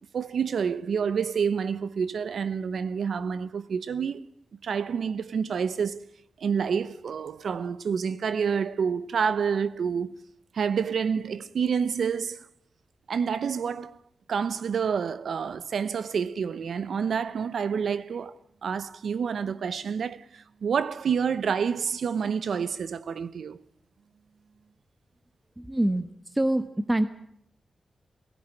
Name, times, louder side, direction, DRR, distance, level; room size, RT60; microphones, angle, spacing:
voice 1, 0.1-4.2 4.6-6.0 6.4-10.2 10.5-12.5 13.1-14.0 14.3-18.4 18.6-23.6, right 6 dB, 80° right, 0.9 m, -28 dB
voice 2, 25.6-27.1, right 1 dB, 15° right, 1.2 m, -26 dB
17.5 x 17.0 x 9.0 m
cardioid pair, 85°, 0 cm